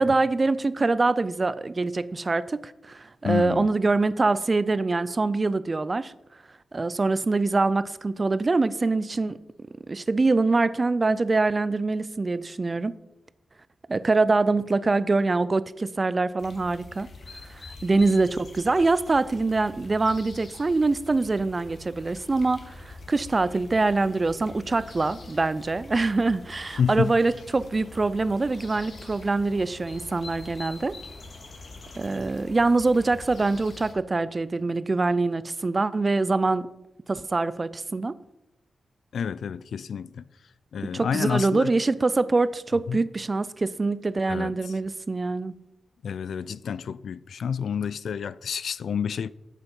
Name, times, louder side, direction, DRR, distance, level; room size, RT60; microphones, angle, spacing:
voice 1, 0.0-6.1 6.7-9.4 9.9-13.0 13.9-17.1 17.5-30.9 32.0-36.7 37.1-38.2 40.8-45.6, right 3 dB, 30° right, 0.4 m, -24 dB
voice 2, 3.2-3.7 26.8-27.1 39.1-40.2 40.7-41.7 42.9-43.0 44.3-44.5 46.0-49.3, left 7 dB, 75° left, 0.3 m, -29 dB
sound 1, 16.4-33.9, left 2 dB, 50° left, 1.9 m, -45 dB
8.3 x 7.9 x 5.5 m
wide cardioid pair, 125°, 0 cm